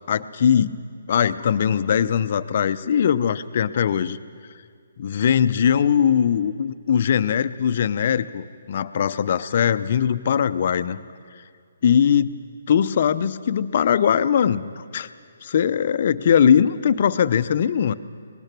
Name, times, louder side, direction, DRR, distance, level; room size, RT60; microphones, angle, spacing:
voice 1, 0.1-0.8 1.1-4.2 5.0-11.0 11.8-12.4 12.7-15.1 15.4-17.9, left 8 dB, 50° left, 13 dB, 0.8 m, -20 dB
23.5 x 20.0 x 6.1 m, 2.1 s
figure-of-eight pair, 140°, 0 cm